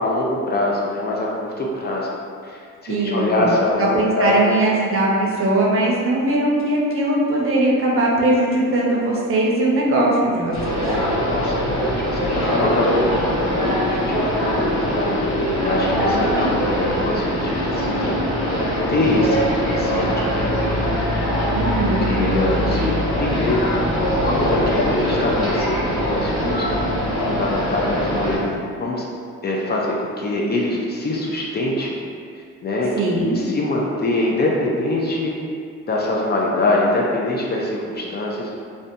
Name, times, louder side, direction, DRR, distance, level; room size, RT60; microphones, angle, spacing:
voice 1, 0.0-2.1 2.4-3.9 4.1-4.6 11.1-13.1 13.5-15.2 15.6-18.2 18.9-20.9 22.1-23.8 24.2-26.9 27.2-29.0 29.4-32.0 32.6-35.3 35.9-38.5, left 2 dB, 35° left, -3 dB, 0.4 m, -24 dB
voice 2, 2.9-3.6 3.9-10.8 21.5-22.3 33.0-33.4, right 1 dB, 45° right, -3 dB, 0.6 m, -20 dB
sound 1, 10.5-28.4, equal, 70° left, 1.1 m, -22 dB
2.5 x 2.2 x 2.6 m, 2.3 s
cardioid pair, 90°, 30 cm